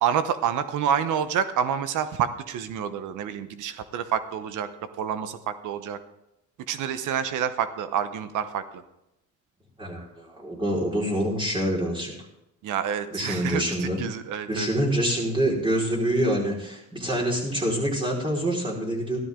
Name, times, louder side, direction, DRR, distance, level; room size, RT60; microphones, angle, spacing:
voice 1, 0.0-4.7 5.0-6.0 6.7-8.8 12.6-14.7, right 8 dB, 85° right, 12 dB, 1.0 m, -28 dB
voice 2, 9.8-12.1 13.1-14.0 14.5-19.2, right 1 dB, 15° right, -3 dB, 4.6 m, -26 dB
14.5 x 12.5 x 3.8 m, 0.86 s
cardioid pair, 90°, 30 cm